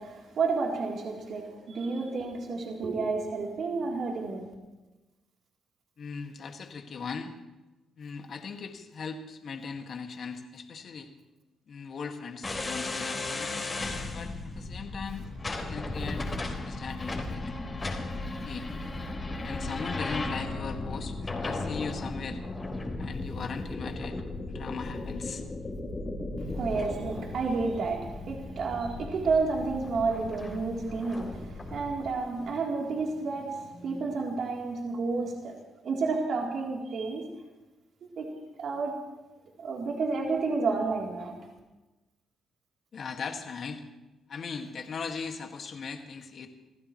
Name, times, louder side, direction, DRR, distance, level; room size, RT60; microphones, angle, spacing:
voice 1, 0.0-4.5 26.4-35.6 35.8-37.2 38.0-38.3 38.6-39.0 39.6-41.4, right 4 dB, 60° right, -2 dB, 3.5 m, -31 dB
voice 2, 6.0-7.3 8.0-11.1 11.7-13.5 14.1-15.3 15.7-17.4 18.5-18.7 19.4-22.4 23.0-24.2 24.5-25.4 42.9-43.8 44.3-46.5, left 5 dB, 55° left, 4 dB, 2.0 m, -38 dB
sound 1, 12.4-32.1, left 2 dB, 25° left, 3.8 m, -36 dB
28.0 x 15.5 x 3.2 m, 1.1 s
cardioid pair, 90°, 0 cm